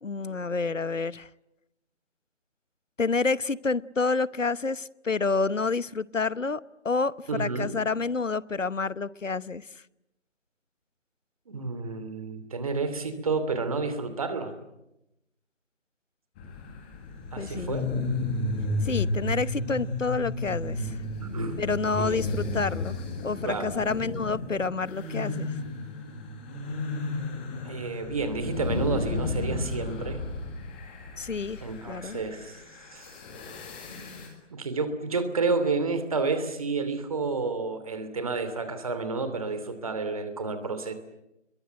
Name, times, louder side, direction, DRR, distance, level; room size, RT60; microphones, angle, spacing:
voice 1, 0.0-1.3 3.0-9.7 17.4-18.0 18.8-21.0 21.6-25.5 31.2-32.2, left 4 dB, 85° left, 19 dB, 1.0 m, -29 dB
voice 2, 7.3-7.7 11.5-14.5 17.3-17.8 21.2-21.6 21.9-22.2 23.4-23.7 27.6-30.2 31.6-32.6 32.9-33.1 34.5-40.9, right 4 dB, 30° right, 10 dB, 2.9 m, -30 dB
sound 1, 16.4-34.3, left 2 dB, 10° left, 1.8 m, -33 dB
29.0 x 22.5 x 9.0 m, 0.88 s
figure-of-eight pair, 160°, 37 cm